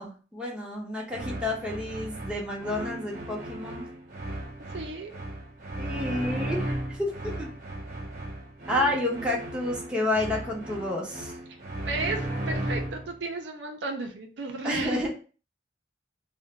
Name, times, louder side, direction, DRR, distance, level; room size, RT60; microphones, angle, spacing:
voice 1, 0.0-3.8 5.8-7.5 8.7-11.3 14.6-15.1, left 1 dB, 5° right, -3 dB, 0.7 m, -30 dB
sound 1, 1.1-13.1, right 1 dB, 45° right, 0.9 m, -35 dB
voice 2, 4.7-5.1 11.9-15.1, right 3 dB, 70° right, 4 dB, 0.5 m, -34 dB
2.5 x 2.1 x 3.7 m, 0.38 s
head